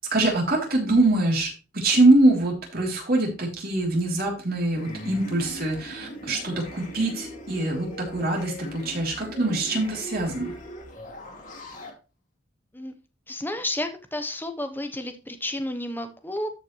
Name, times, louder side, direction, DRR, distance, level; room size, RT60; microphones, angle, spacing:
voice 1, 0.1-10.5, right 2 dB, 50° right, -1 dB, 3.4 m, -23 dB
sound 1, 4.7-11.9, equal, 40° left, 2.4 m, -40 dB
voice 2, 13.3-16.5, left 1 dB, 10° left, 7 dB, 1.0 m, -31 dB
13.0 x 5.5 x 3.2 m, 0.31 s
head